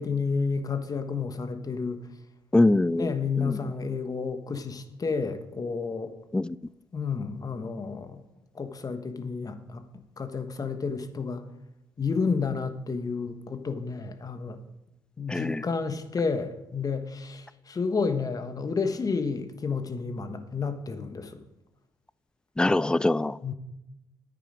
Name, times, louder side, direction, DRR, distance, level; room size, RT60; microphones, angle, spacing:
voice 1, 0.0-2.1 3.0-6.1 6.9-8.2 8.5-11.4 12.0-14.6 15.2-21.4 23.4-23.5, left 5 dB, 35° left, 9 dB, 1.2 m, -31 dB
voice 2, 2.5-3.1 3.4-3.6 6.3-6.6 15.3-15.6 22.6-23.4, left 2 dB, 10° left, 20 dB, 0.3 m, -23 dB
9.7 x 9.1 x 5.1 m, 0.93 s
supercardioid pair, 70°, 10 cm